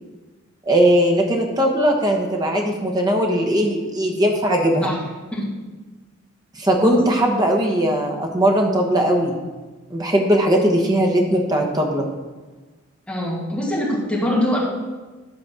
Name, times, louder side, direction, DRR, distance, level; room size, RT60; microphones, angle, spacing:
voice 1, 0.7-4.9 6.5-9.4 9.9-12.0, right 1 dB, 20° right, 1 dB, 1.2 m, -19 dB
voice 2, 13.1-14.6, left 1 dB, 5° left, -6 dB, 2.1 m, -23 dB
12.0 x 4.1 x 6.2 m, 1.3 s
head